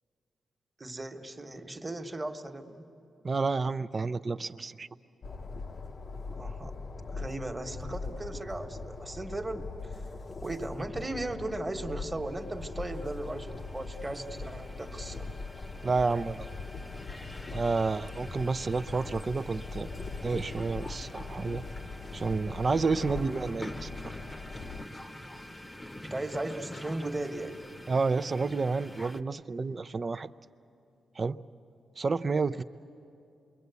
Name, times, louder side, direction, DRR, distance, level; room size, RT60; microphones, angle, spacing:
voice 1, 0.8-2.9 6.4-6.8 7.1-10.0 10.4-15.3 23.0-23.7 26.0-27.6, right 2 dB, 20° right, 4 dB, 1.4 m, -37 dB
voice 2, 3.2-4.9 15.8-16.5 17.5-19.9 20.2-21.6 22.1-23.9 27.9-30.3 31.2-31.4 32.0-32.6, right 4 dB, 40° right, 13 dB, 0.6 m, -30 dB
Train, 5.2-24.9, left 3 dB, 45° left, 0.8 m, -41 dB
sound 1, 12.1-29.2, left 1 dB, 15° left, 0.9 m, -46 dB
27.5 x 23.0 x 8.3 m, 2.6 s
cardioid pair, 85°, 0 cm